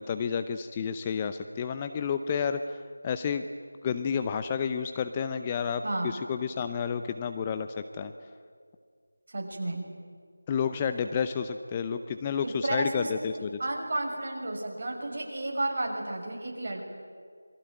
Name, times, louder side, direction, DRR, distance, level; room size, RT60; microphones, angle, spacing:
voice 1, 0.0-3.4 3.8-7.7 7.9-8.1 10.5-13.6, left 7 dB, 15° left, 9 dB, 0.7 m, -30 dB
voice 2, 5.8-6.1 9.3-9.9 12.3-13.1 13.3-16.8, right 2 dB, 40° right, 0 dB, 6.2 m, -32 dB
28.0 x 23.0 x 9.4 m, 2.1 s
figure-of-eight pair, 170°, 0 cm